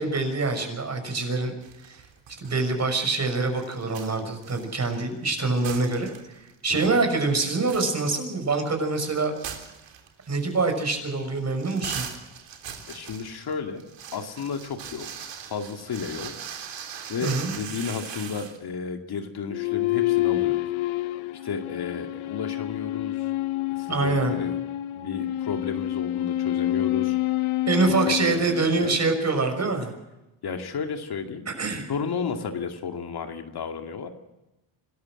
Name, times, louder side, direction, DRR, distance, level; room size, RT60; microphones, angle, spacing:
voice 1, 0.0-1.5 1.8-2.0 2.4-6.1 6.4-9.3 10.3-12.0 17.2-17.5 23.9-24.3 27.7-29.9 31.5-31.9, right 3 dB, 30° right, 5 dB, 6.2 m, -25 dB
sound 1, 1.6-2.5 2.8-5.3 5.5-6.5 6.8-6.9 7.4-18.6, right 8 dB, 60° right, 3.6 m, -40 dB
voice 2, 12.9-13.8 14.1-15.1 15.5-16.3 17.1-20.6 21.4-23.3 23.7-24.6 24.9-27.2 27.9-29.0 30.4-31.5 31.9-34.1, left 6 dB, 50° left, 5 dB, 2.4 m, -33 dB
sound 2, 19.5-29.1, left 15 dB, 75° left, 1.1 m, -28 dB
26.5 x 13.5 x 7.6 m, 0.97 s
supercardioid pair, 85°, 49 cm